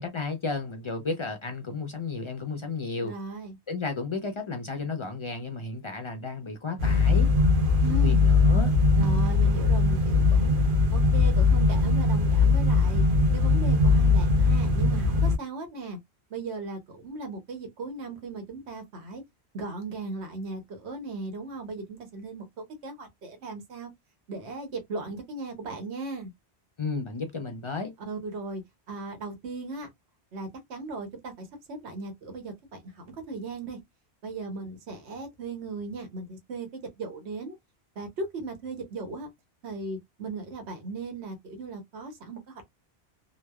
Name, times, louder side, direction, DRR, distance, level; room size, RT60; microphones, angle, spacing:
voice 1, 0.0-3.1 3.7-7.3 7.9-9.3 26.8-27.9, left 4 dB, 55° left, 0.3 m, -33 dB
voice 2, 3.0-3.6 7.8-8.3 9.0-10.5 10.9-13.0 13.3-16.0 16.3-19.2 19.5-23.9 24.3-26.3 28.0-28.6 28.9-29.9 30.3-33.8 34.2-37.6 38.0-39.3 39.6-42.6, right 3 dB, 90° right, 1.1 m, -37 dB
sound 1, 6.8-15.4, left 3 dB, 60° right, 0.7 m, -21 dB
3.0 x 2.0 x 2.2 m
omnidirectional pair, 1.1 m